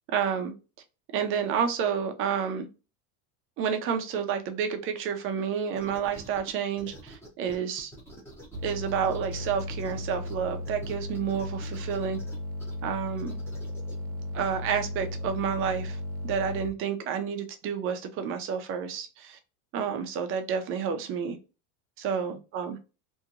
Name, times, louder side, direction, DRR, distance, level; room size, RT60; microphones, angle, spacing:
voice 1, 0.1-0.5 1.1-2.7 3.6-7.9 8.6-12.2 12.8-13.4 14.3-19.4 19.7-21.4 22.0-22.8, right 7 dB, 30° right, 0.4 m, -30 dB
sound 1, 5.8-6.5 6.8-10.3 10.6-12.7 13.2-13.9, equal, 5° left, 0.7 m, -47 dB
sound 2, 8.5-16.7, left 1 dB, 70° right, 0.6 m, -35 dB
2.8 x 2.6 x 2.4 m
supercardioid pair, 150°, 44 cm